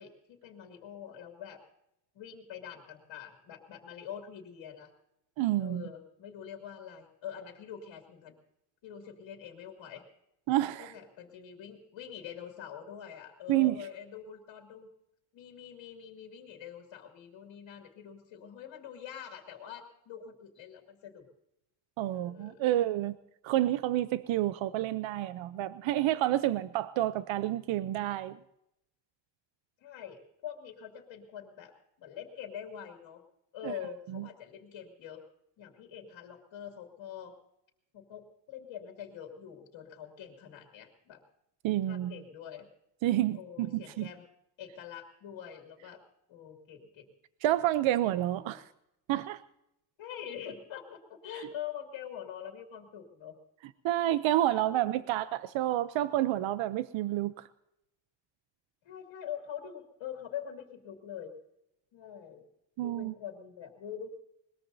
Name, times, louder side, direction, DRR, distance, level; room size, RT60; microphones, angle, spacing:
voice 1, 0.0-1.6 2.1-4.9 5.6-8.4 8.8-10.0 10.8-14.9 15.3-21.3 22.1-22.7 29.8-33.2 33.5-35.2 35.6-37.3 37.9-41.2 41.9-42.7 43.3-44.2 44.6-46.0 46.3-47.1 48.0-48.1 48.4-48.6 50.0-53.3 54.7-54.9 58.8-61.3 61.9-62.4 62.8-64.1, left 9 dB, 75° left, 2 dB, 2.5 m, -45 dB
voice 2, 5.4-5.8 10.5-10.9 13.5-13.9 22.0-23.2 23.4-28.4 33.6-33.7 34.1-34.2 41.6-42.1 43.0-44.1 47.4-48.6 49.1-49.4 53.8-57.5 62.8-63.1, right 14 dB, 85° right, 14 dB, 0.7 m, -29 dB
21.5 x 20.5 x 2.7 m, 0.83 s
cardioid pair, 120°, 45 cm